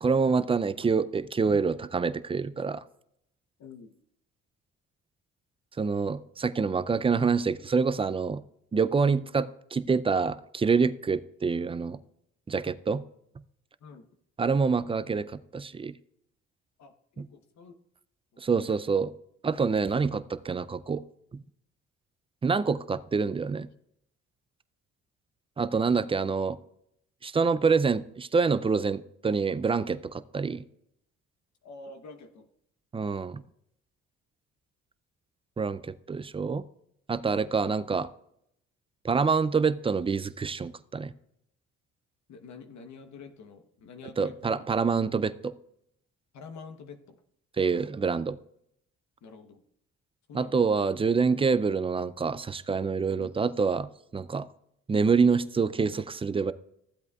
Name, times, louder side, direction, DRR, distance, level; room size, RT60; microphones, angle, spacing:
voice 1, 0.0-2.8 5.8-8.4 8.7-12.0 12.5-13.0 14.4-15.9 17.2-17.3 18.4-19.1 19.4-21.0 21.3-21.4 22.4-23.7 25.6-26.6 27.2-30.6 32.9-33.4 35.6-36.6 37.1-38.1 39.0-41.1 44.2-45.5 47.6-48.4 50.3-54.5 54.9-56.5, right 5 dB, 20° right, 14 dB, 0.4 m, -26 dB
voice 2, 3.6-3.9 13.8-14.1 16.8-17.7 18.3-18.4 31.6-32.5 37.3-37.4 42.3-44.6 46.3-47.2 49.2-49.6 50.3-50.6 53.2-53.3, left 4 dB, 65° left, 6 dB, 1.0 m, -47 dB
15.0 x 8.1 x 2.3 m, 0.75 s
cardioid pair, 90°, 30 cm